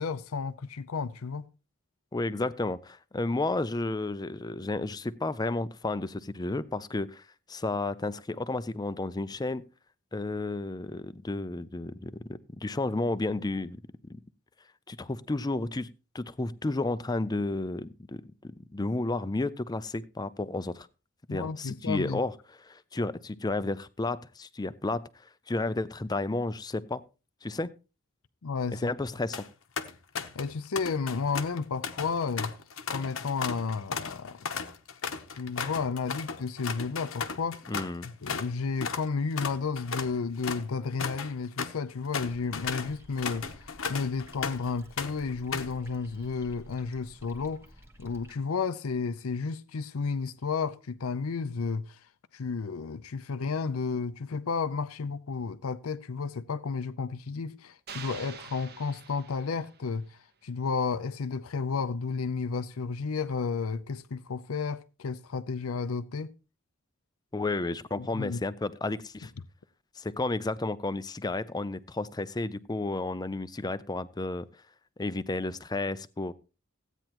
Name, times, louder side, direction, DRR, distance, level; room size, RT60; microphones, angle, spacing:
voice 1, 0.0-1.4 21.3-22.2 28.4-28.8 30.4-32.5 32.9-34.4 35.3-37.6 38.0-47.7 48.0-52.0 52.3-66.3 68.0-68.4, left 5 dB, 85° left, 0.6 m, -32 dB
voice 2, 2.1-7.2 7.5-9.6 10.1-13.8 14.1-14.2 14.9-15.9 16.1-20.9 21.3-22.3 22.6-25.1 25.5-27.0 27.4-27.7 28.7-29.4 37.7-38.1 67.3-69.3 70.0-74.5 75.0-76.3, left 2 dB, 20° left, 0.5 m, -32 dB
sound 1, 29.1-29.5 29.8-30.5 30.8-38.5 38.8-39.1 39.4-44.7 45.0-45.8, left 6 dB, 70° left, 0.9 m, -36 dB
sound 2, 42.2-48.4, equal, 10° right, 1.2 m, -53 dB
sound 3, 57.9-60.0, right 6 dB, 50° right, 1.1 m, -46 dB
15.5 x 9.1 x 2.9 m
head